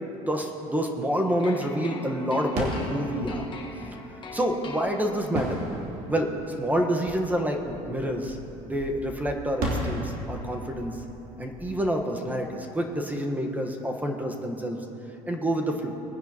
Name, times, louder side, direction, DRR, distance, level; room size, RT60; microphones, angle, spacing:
voice 1, 0.2-3.4 4.3-5.6 6.1-8.4 8.6-11.0 11.4-14.8 15.3-15.9, equal, 10° right, 2 dB, 1.2 m, -28 dB
sound 1, 1.4-5.5, left 2 dB, 30° left, 1.5 m, -41 dB
sound 2, 2.5-13.1, right 1 dB, 60° right, 3.1 m, -36 dB
20.0 x 10.0 x 2.9 m, 2.9 s
supercardioid pair, 90°, 16 cm